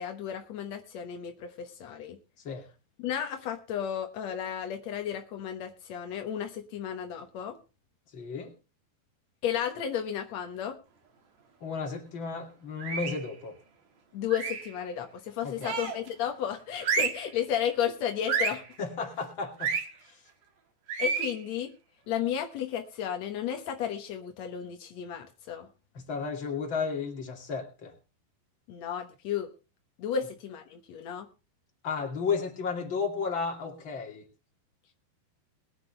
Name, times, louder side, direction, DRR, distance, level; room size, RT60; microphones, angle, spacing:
voice 1, 0.0-2.2 3.0-7.6 9.4-10.8 14.1-18.6 21.0-21.7 22.1-25.7 28.7-29.5 30.0-31.3, left 9 dB, 85° left, 4 dB, 1.5 m, -33 dB
voice 2, 8.1-8.5 11.6-13.6 15.4-15.8 18.8-19.7 20.1-20.2 25.9-27.9 31.8-34.3, left 5 dB, 35° left, 2 dB, 2.6 m, -33 dB
sound 1, 12.8-13.3 14.3-14.7 15.6-16.1 16.8-17.3 18.3-18.7 19.6-19.9 20.9-21.4, right 5 dB, 50° right, 2.6 m, -30 dB
21.5 x 9.2 x 3.3 m, 0.30 s
omnidirectional pair, 5.0 m